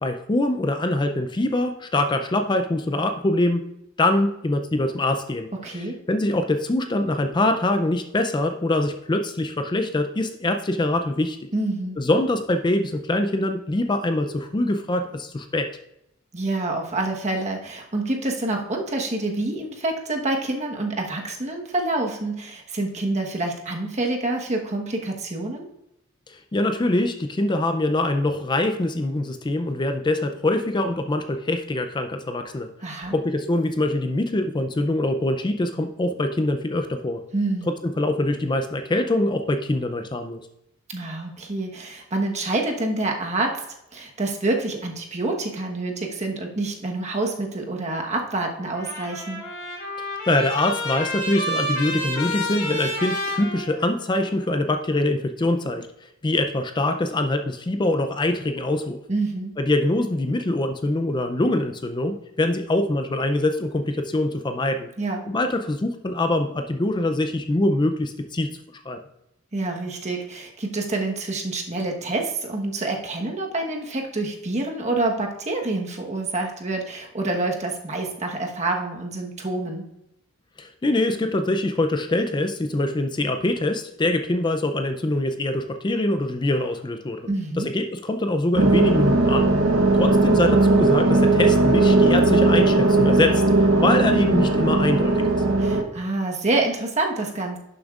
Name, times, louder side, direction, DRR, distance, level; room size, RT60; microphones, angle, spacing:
voice 1, 0.0-3.7 4.0-11.5 12.0-15.7 26.3-32.7 33.1-37.2 37.7-40.4 50.3-59.0 59.6-64.9 65.3-68.5 68.9-69.0 80.6-87.2 87.6-89.5 89.9-93.4 93.8-95.2, left 1 dB, 20° left, 7 dB, 0.4 m, -24 dB
voice 2, 5.6-6.0 11.5-12.0 16.3-25.6 32.8-33.1 37.3-37.7 40.9-43.6 43.9-49.4 59.1-59.5 65.0-65.2 69.5-79.9 87.3-87.7 95.6-97.6, right 2 dB, 35° right, 1 dB, 1.2 m, -27 dB
Trumpet, 48.6-54.3, left 1 dB, 60° left, 3.2 m, -30 dB
sound 1, 88.6-95.8, right 2 dB, 80° right, 0.9 m, -18 dB
11.5 x 7.0 x 2.4 m, 0.82 s
head